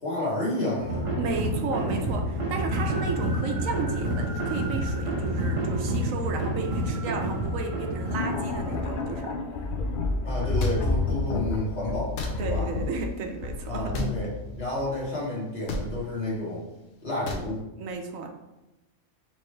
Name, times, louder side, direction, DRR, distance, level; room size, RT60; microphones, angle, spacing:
voice 1, 0.0-1.0 10.2-12.7 13.7-16.6 17.0-17.6, left 1 dB, 50° left, -6 dB, 1.5 m, -30 dB
sound 1, 0.8-9.3, right 1 dB, 30° right, 0.7 m, -29 dB
voice 2, 1.2-9.3 12.4-14.0 17.8-18.3, right 4 dB, 75° right, 3 dB, 1.0 m, -33 dB
sound 2, 8.1-15.0, left 3 dB, 90° left, 0.4 m, -30 dB
sound 3, 10.6-10.8 12.1-12.3 13.9-14.1 15.7-15.9 17.3-17.5, left 2 dB, 70° left, 1.0 m, -31 dB
4.4 x 3.1 x 3.2 m, 0.99 s
omnidirectional pair, 1.4 m